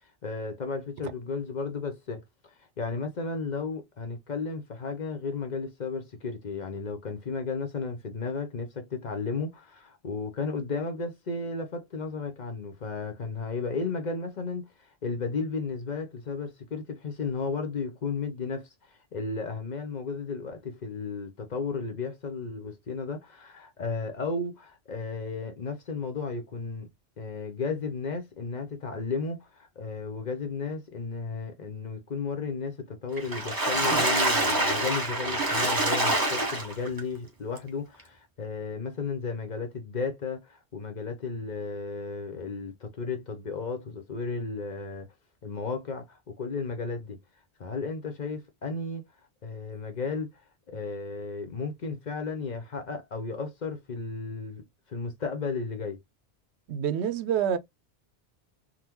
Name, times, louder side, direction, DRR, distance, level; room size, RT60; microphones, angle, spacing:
voice 1, 0.2-26.9 27.2-45.1 45.4-47.2 47.6-49.0 49.4-56.0, left 4 dB, 50° left, 0.7 m, -34 dB
Water / Splash splatter, 33.2-37.0 37.6-37.7 38.0-38.1, right 1 dB, 20° right, 0.9 m, -26 dB
voice 2, 56.7-57.6, right 9 dB, 85° right, 0.8 m, -27 dB
3.7 x 2.1 x 2.9 m
omnidirectional pair, 1.1 m